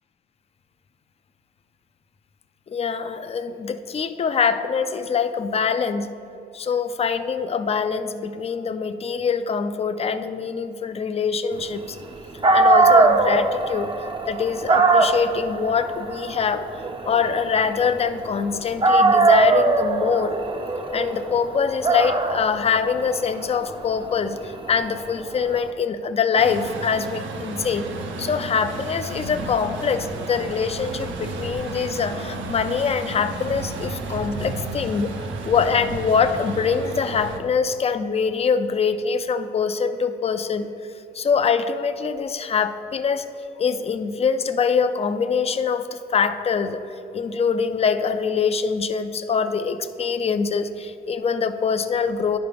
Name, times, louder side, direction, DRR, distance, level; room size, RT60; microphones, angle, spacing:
voice 1, 2.7-6.1 6.5-12.0 12.5-13.9 14.3-16.6 17.1-20.4 20.9-27.8 28.2-35.1 35.4-40.7 41.1-43.2 43.6-46.8 47.1-52.4, left 6 dB, 30° left, 10 dB, 0.4 m, -24 dB
Dog, 12.1-12.2 12.4-18.4 18.8-25.6, right 3 dB, 25° right, 0.6 m, -21 dB
Truck, 26.4-37.4, right 3 dB, 75° right, 0.8 m, -32 dB
12.0 x 4.8 x 3.4 m, 2.8 s
cardioid pair, 90°, 20 cm